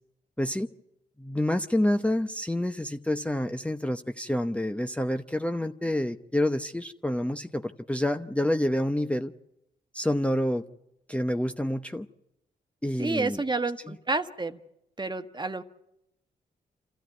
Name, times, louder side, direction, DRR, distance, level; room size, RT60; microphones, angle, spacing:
voice 1, 0.4-0.7 1.2-9.3 9.9-10.6 11.1-12.1 12.8-13.4 13.9-14.0, left 1 dB, 5° left, 7 dB, 0.9 m, -28 dB
voice 2, 13.0-14.6 15.0-15.6, right 3 dB, 25° right, 9 dB, 1.5 m, -29 dB
27.5 x 14.0 x 9.3 m, 0.86 s
supercardioid pair, 50°, 18 cm